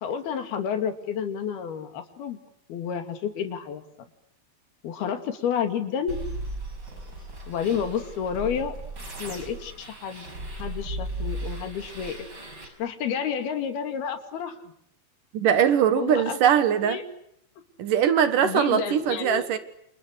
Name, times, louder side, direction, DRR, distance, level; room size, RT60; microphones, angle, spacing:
voice 1, 0.0-2.4 2.7-3.8 4.8-6.2 7.5-8.7 9.2-10.3 10.6-12.2 12.8-14.6 16.0-17.0 18.4-19.5, left 7 dB, 75° left, 8 dB, 4.4 m, -30 dB
sound 1, 6.1-12.7, right 1 dB, 25° right, 6.1 m, -36 dB
voice 2, 15.3-17.0 17.8-19.6, right 9 dB, 65° right, 11 dB, 2.9 m, -21 dB
29.0 x 29.0 x 6.5 m, 0.71 s
omnidirectional pair, 4.5 m